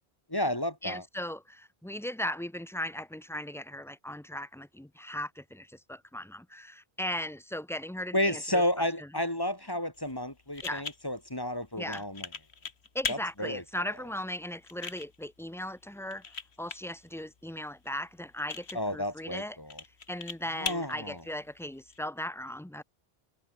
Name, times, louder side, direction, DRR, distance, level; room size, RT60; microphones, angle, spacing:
voice 1, 0.3-1.0 8.1-12.3 13.1-13.6 18.7-19.8 20.6-21.2, left 1 dB, 20° left, 2.3 m, -31 dB
voice 2, 0.8-8.6 9.0-9.1 10.6-10.9 11.8-12.0 12.9-19.6 20.1-22.8, left 1 dB, 5° left, 0.4 m, -38 dB
sound 1, 9.9-22.0, left 5 dB, 85° left, 1.9 m, -43 dB
omnidirectional pair, 1.1 m